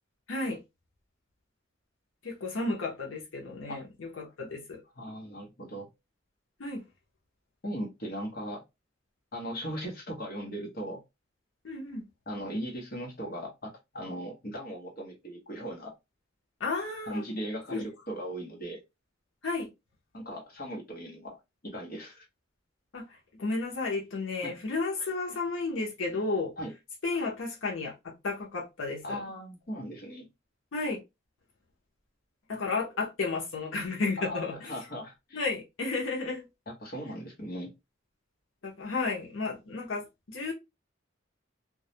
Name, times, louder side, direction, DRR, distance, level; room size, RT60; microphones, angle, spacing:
voice 1, 0.3-0.6 2.2-4.8 6.6-6.8 11.6-12.0 16.6-17.2 17.7-17.8 19.4-19.7 22.9-26.5 27.0-29.2 30.7-31.0 32.5-34.8 35.3-36.4 38.6-40.5, left 3 dB, 85° left, 0.6 m, -33 dB
voice 2, 5.0-5.9 7.6-8.6 9.3-11.0 12.3-15.9 17.1-18.8 20.1-21.4 21.6-22.3 24.4-24.5 26.6-26.7 29.0-30.3 34.2-35.4 36.7-37.7, equal, 50° left, 0.8 m, -38 dB
2.2 x 2.1 x 2.6 m
head